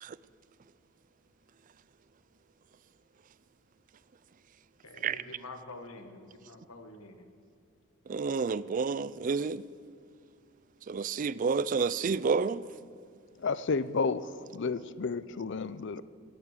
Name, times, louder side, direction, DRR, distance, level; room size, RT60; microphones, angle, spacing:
voice 1, 4.8-7.3, left 2 dB, 80° left, 1.5 m, -47 dB
voice 2, 8.1-9.6 10.9-12.6, right 5 dB, 35° right, 0.3 m, -29 dB
voice 3, 13.4-16.0, left 4 dB, 55° left, 0.5 m, -31 dB
17.5 x 11.0 x 6.6 m
head